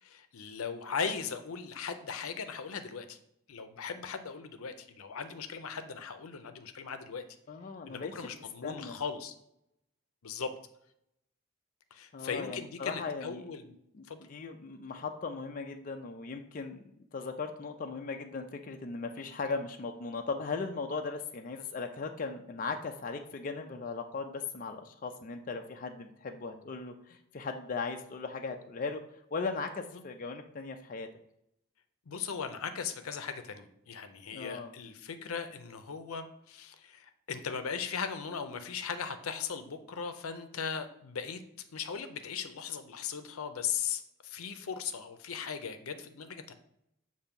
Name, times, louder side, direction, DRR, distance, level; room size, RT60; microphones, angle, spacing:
voice 1, 0.0-3.2 3.5-7.2 7.9-9.3 10.2-10.5 11.9-13.7 14.1-14.3 29.9-30.0 32.1-41.4 41.7-46.6, left 6 dB, 85° left, 8 dB, 0.6 m, -38 dB
voice 2, 7.5-8.1 8.6-9.0 12.1-13.4 13.9-16.8 17.1-29.0 29.3-31.1 34.3-34.7, left 4 dB, 40° left, 5 dB, 0.4 m, -38 dB
6.8 x 2.7 x 5.2 m, 0.77 s
head